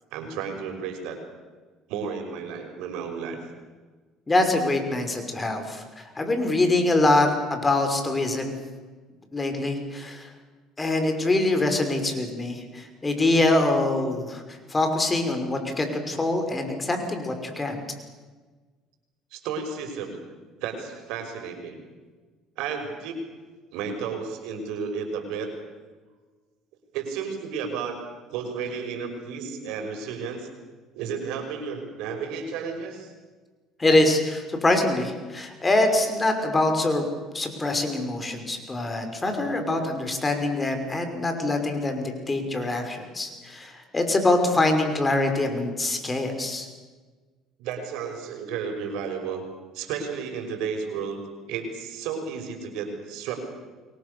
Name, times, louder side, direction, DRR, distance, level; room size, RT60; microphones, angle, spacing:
voice 1, 0.1-1.2 1.9-3.4 19.3-20.2 20.6-21.8 22.6-23.2 23.7-25.5 26.9-28.0 28.3-30.5 30.9-33.1 47.6-49.4 49.7-51.2 51.5-53.5, right 6 dB, 75° right, 4 dB, 6.0 m, -32 dB
voice 2, 4.3-8.5 9.3-10.3 10.8-17.8 33.8-37.1 37.3-46.7, left 2 dB, 20° left, 6 dB, 5.6 m, -24 dB
28.5 x 23.0 x 7.0 m, 1.3 s
supercardioid pair, 95°, 0 cm